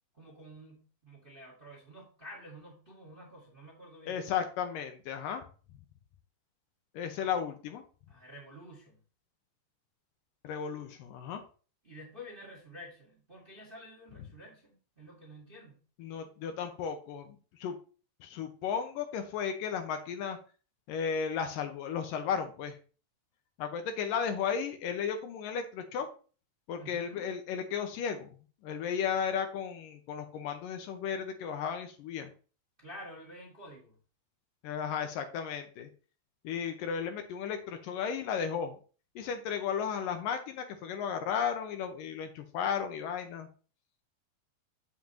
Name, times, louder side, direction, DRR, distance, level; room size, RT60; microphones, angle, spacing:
voice 1, 0.1-4.2 7.2-7.3 8.1-9.0 11.8-15.8 26.7-27.3 32.8-34.0, equal, 25° right, -1 dB, 1.3 m, -50 dB
voice 2, 4.1-5.4 6.9-7.8 10.4-11.4 16.0-17.8 18.2-20.4 20.9-22.8 23.6-26.1 26.7-28.3 28.6-32.3 34.6-35.9 36.4-38.8 39.2-43.5, left 7 dB, 75° left, 6 dB, 2.4 m, -34 dB
7.6 x 7.5 x 2.9 m, 0.37 s
omnidirectional pair, 4.1 m